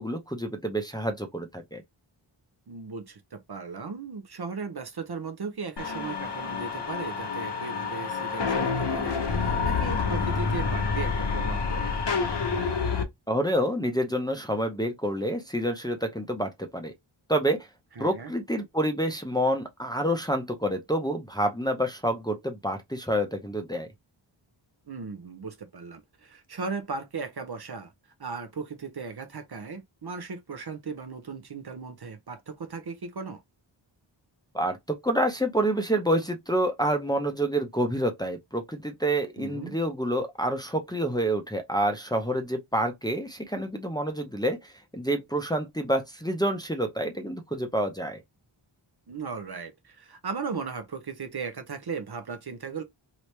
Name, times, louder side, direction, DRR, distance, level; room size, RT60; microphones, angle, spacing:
voice 1, 0.0-1.8 13.3-16.9 17.3-17.6 18.0-23.9 34.5-48.2, right 1 dB, 10° left, 0.6 m, -28 dB
voice 2, 2.7-11.9 18.0-18.3 24.9-27.9 28.2-33.4 39.4-39.8 49.1-52.8, right 4 dB, 50° right, 0.7 m, -37 dB
sound 1, 5.8-13.0, left 5 dB, 55° left, 0.9 m, -28 dB
3.0 x 2.8 x 3.2 m
wide cardioid pair, 70°, 49 cm